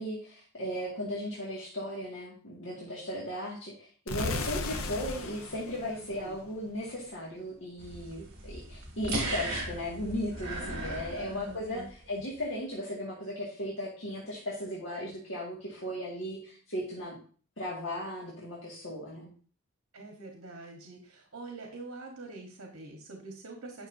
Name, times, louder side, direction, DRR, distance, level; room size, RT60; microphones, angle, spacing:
voice 1, 0.0-17.2 17.6-19.3, left 1 dB, 65° left, -6 dB, 2.0 m, -36 dB
sound 1, 4.1-6.9, left 3 dB, 80° left, 0.9 m, -36 dB
voice 2, 5.9-6.4 11.1-12.1 19.9-23.9, right 3 dB, 75° right, 2 dB, 1.3 m, -45 dB
sound 2, 7.8-11.9, right 2 dB, 50° right, 2.7 m, -37 dB
10.0 x 6.0 x 2.7 m, 0.42 s
head